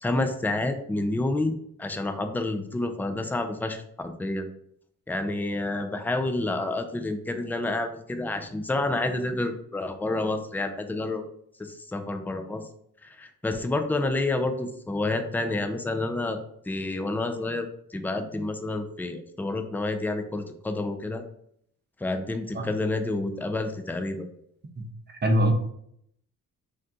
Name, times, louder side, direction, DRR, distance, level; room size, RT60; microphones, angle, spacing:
voice 1, 0.0-1.5 1.8-4.5 5.1-11.2 11.6-12.6 13.0-16.4 16.7-21.2 22.0-24.3, left 2 dB, 5° left, 7 dB, 0.4 m, -29 dB
voice 2, 24.8-25.5, right 1 dB, 30° right, 4 dB, 0.7 m, -24 dB
2.7 x 2.2 x 3.7 m, 0.69 s
hypercardioid pair, 45°, 37 cm